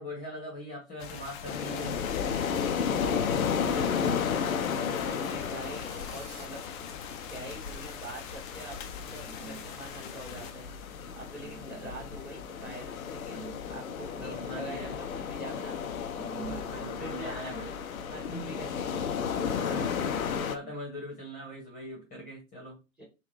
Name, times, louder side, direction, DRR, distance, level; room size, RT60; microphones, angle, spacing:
voice 1, 0.0-2.0 3.5-4.1 9.1-9.6 11.4-12.1 13.3-13.6 14.1-15.0 16.1-17.7 18.1-18.6 19.3-23.0, equal, 20° left, -2 dB, 1.3 m, -42 dB
sound 1, 1.0-10.5, left 7 dB, 40° left, 0.6 m, -44 dB
sound 2, 1.4-20.6, left 7 dB, 80° left, 0.6 m, -33 dB
voice 2, 5.0-6.6 7.3-8.8 9.1-10.7 11.1-15.8 16.3-17.6 18.1-18.8 23.0-23.1, right 1 dB, 5° right, -1 dB, 1.7 m, -44 dB
sound 3, 5.6-6.5, right 8 dB, 35° right, 0.4 m, -52 dB
3.6 x 2.5 x 3.1 m, 0.28 s
hypercardioid pair, 115°, 41 cm